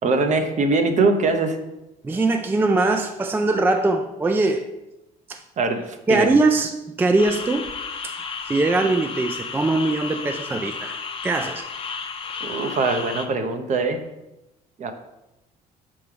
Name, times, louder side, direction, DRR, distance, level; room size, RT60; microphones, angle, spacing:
voice 1, 0.0-1.6 5.6-6.3 12.4-14.0 14.8-14.9, right 3 dB, 45° right, 7 dB, 0.7 m, -22 dB
voice 2, 2.0-4.7 5.3-5.4 6.1-6.7 7.0-7.7 8.0-8.1 8.5-11.6, right 2 dB, 10° right, 7 dB, 0.3 m, -21 dB
sound 1, 7.2-13.3, left 5 dB, 35° left, 0.6 m, -33 dB
5.7 x 5.4 x 3.3 m, 0.94 s
cardioid pair, 110°, 17 cm